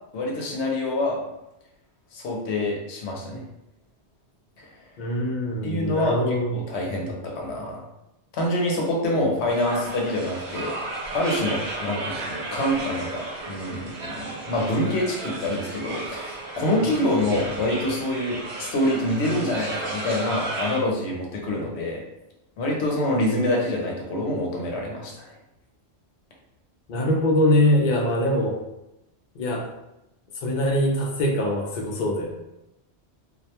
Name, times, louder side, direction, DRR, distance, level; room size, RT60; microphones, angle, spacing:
voice 1, 0.1-1.2 2.1-3.4 4.6-4.7 5.6-7.8 8.3-10.7 11.1-22.0 22.6-25.3, left 1 dB, 80° left, -1 dB, 0.9 m, -26 dB
voice 2, 5.0-6.7 26.9-28.6 29.4-29.6 30.4-32.3, left 1 dB, 60° left, 0 dB, 0.5 m, -23 dB
sound 1, 9.5-20.8, right 2 dB, 80° right, 0.9 m, -34 dB
2.4 x 2.1 x 2.8 m, 0.89 s
omnidirectional pair, 1.1 m